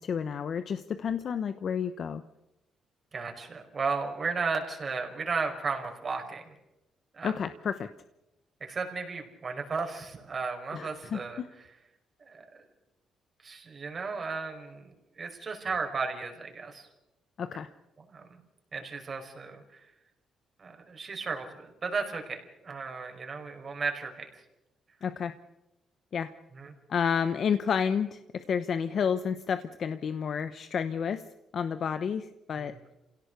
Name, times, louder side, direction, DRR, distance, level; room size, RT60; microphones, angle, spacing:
voice 1, 0.0-2.2 7.2-7.9 10.7-11.5 17.4-17.7 25.0-25.3 26.1-26.3 26.9-31.3 31.5-32.7, left 7 dB, 55° left, 11 dB, 0.9 m, -30 dB
voice 2, 3.1-6.5 7.1-7.3 8.6-11.4 12.2-12.4 13.4-16.9 18.1-18.2 18.7-19.6 20.6-24.3 26.6-26.7 32.6-32.8, right 4 dB, 40° right, 4 dB, 5.2 m, -34 dB
27.0 x 17.5 x 6.7 m, 0.95 s
cardioid pair, 90°, 0 cm